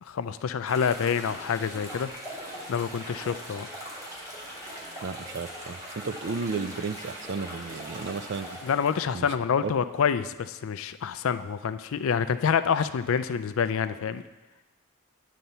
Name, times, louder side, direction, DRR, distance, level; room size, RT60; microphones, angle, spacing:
voice 1, 0.0-2.1 2.7-3.7 8.6-14.2, left 7 dB, 65° left, 12 dB, 0.4 m, -27 dB
sound 1, 0.7-9.1, equal, 15° right, 1.6 m, -41 dB
voice 2, 5.0-8.6 9.1-9.3 9.6-9.7, right 4 dB, 50° right, 11 dB, 0.4 m, -33 dB
9.3 x 4.2 x 6.8 m, 1.1 s
head